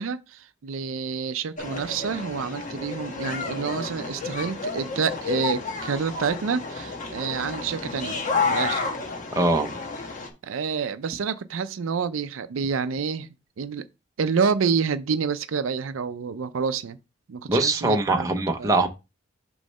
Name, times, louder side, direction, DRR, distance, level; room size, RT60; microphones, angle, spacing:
voice 1, 0.0-8.2 8.4-8.8 10.4-13.3 13.6-13.9 14.2-17.0 17.3-18.3 18.6-18.7, right 5 dB, 90° right, 0.5 m, -28 dB
sound 1, 1.6-10.3, left 4 dB, 40° left, 1.2 m, -31 dB
voice 2, 9.3-9.7 17.5-18.9, right 2 dB, 15° right, 0.7 m, -22 dB
6.3 x 3.1 x 5.4 m
head